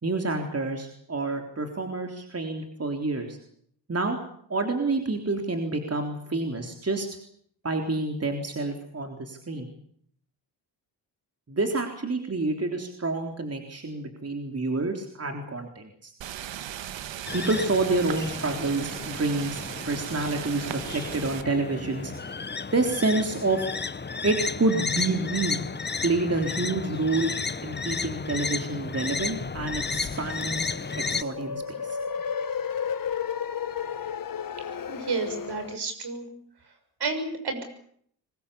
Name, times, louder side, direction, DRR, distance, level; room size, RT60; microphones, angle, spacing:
voice 1, 0.0-3.4 3.9-4.2 4.5-7.1 7.6-9.7 11.5-16.1 17.3-22.1 22.7-23.7 24.2-25.7 26.0-27.3 27.6-30.6 31.1-32.0, right 2 dB, 35° right, 4 dB, 3.7 m, -28 dB
sound 1, 16.2-21.4, right 11 dB, 85° right, 1.5 m, -37 dB
sound 2, 17.3-31.2, left 4 dB, 25° left, 1.0 m, -33 dB
sound 3, 29.2-35.8, left 7 dB, 50° left, 1.3 m, -33 dB
voice 2, 34.9-36.3 37.0-37.6, right 4 dB, 60° right, 6 dB, 6.6 m, -31 dB
23.5 x 21.0 x 8.5 m, 0.66 s
cardioid pair, 65°, 44 cm